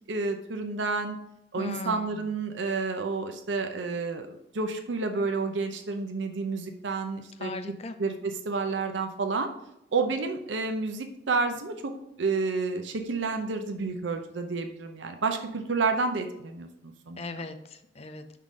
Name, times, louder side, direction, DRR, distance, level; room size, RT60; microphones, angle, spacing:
voice 1, 0.1-1.2 1.5-7.5 8.0-9.5 9.9-11.9 12.2-17.2, right 4 dB, 75° right, 6 dB, 0.6 m, -30 dB
voice 2, 1.6-2.3 7.4-8.0 17.2-18.4, left 2 dB, 35° left, 9 dB, 0.5 m, -38 dB
5.8 x 3.7 x 4.9 m, 0.84 s
head